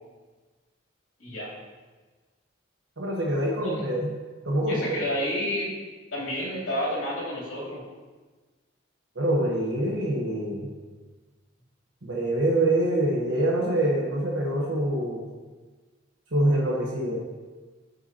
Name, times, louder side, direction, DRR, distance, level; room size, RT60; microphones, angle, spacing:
voice 1, 1.2-1.5 4.7-5.7 6.1-7.8, equal, 80° left, -5 dB, 2.5 m, -29 dB
voice 2, 3.0-4.1 4.4-5.0 9.2-10.7 12.0-15.2 16.3-17.2, right 1 dB, 75° right, -2 dB, 1.1 m, -25 dB
11.5 x 5.6 x 2.9 m, 1.3 s
head